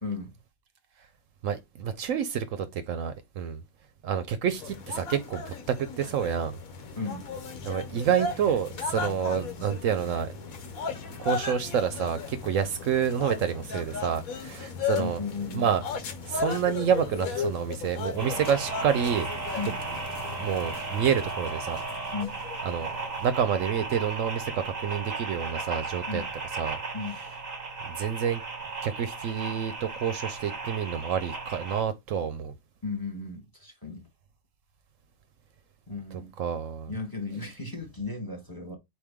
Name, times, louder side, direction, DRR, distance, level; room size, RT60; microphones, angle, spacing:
voice 1, 0.0-0.3 7.0-7.3 15.0-15.7 19.6-19.8 22.1-22.4 26.1-26.3 26.9-27.2 32.8-34.0 35.9-36.3 36.9-38.8, left 4 dB, 15° left, 1.2 m, -35 dB
voice 2, 1.4-3.6 4.0-6.6 7.6-10.3 11.2-15.2 15.5-15.8 16.3-19.3 20.4-21.8 22.6-22.9 23.2-26.2 26.6-26.8 27.8-28.4 28.8-32.5 36.4-36.9, right 8 dB, 70° right, 0.9 m, -28 dB
sound 1, 4.6-23.3, left 5 dB, 80° left, 1.3 m, -36 dB
sound 2, 18.2-31.8, right 3 dB, 35° right, 0.9 m, -36 dB
4.3 x 3.1 x 3.5 m
omnidirectional pair, 1.5 m